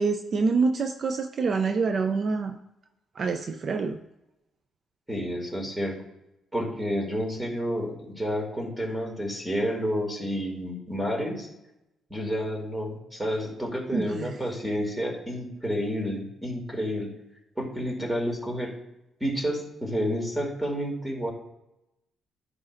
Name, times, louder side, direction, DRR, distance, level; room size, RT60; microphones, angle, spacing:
voice 1, 0.0-2.6 3.2-4.0 13.9-14.4, right 4 dB, 50° right, 8 dB, 0.5 m, -26 dB
voice 2, 5.1-6.0 6.5-11.5 12.1-17.1 17.6-18.7 19.2-21.3, equal, 5° right, 0 dB, 2.4 m, -30 dB
10.5 x 4.9 x 2.6 m, 0.90 s
cardioid pair, 90°, 0 cm